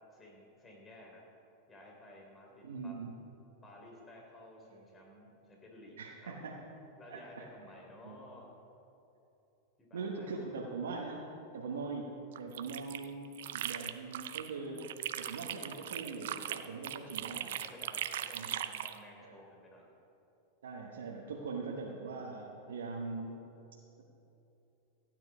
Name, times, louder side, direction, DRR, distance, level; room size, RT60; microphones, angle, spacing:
voice 1, 0.1-1.2 1.7-3.0 3.6-6.4 7.0-8.5 9.8-10.7 17.6-19.9, left 1 dB, 20° left, -1 dB, 3.4 m, -54 dB
voice 2, 2.6-3.1 6.0-6.6 7.1-7.5 8.0-8.2 9.9-11.2 11.5-14.8 15.2-17.5 18.3-18.5 19.2-19.4 20.6-23.5, right 4 dB, 90° right, -1 dB, 1.2 m, -41 dB
sound 1, 12.3-14.5 14.8-19.0, right 11 dB, 75° right, 0.6 m, -39 dB
15.0 x 9.2 x 4.9 m, 2.9 s
hypercardioid pair, 115°, 0 cm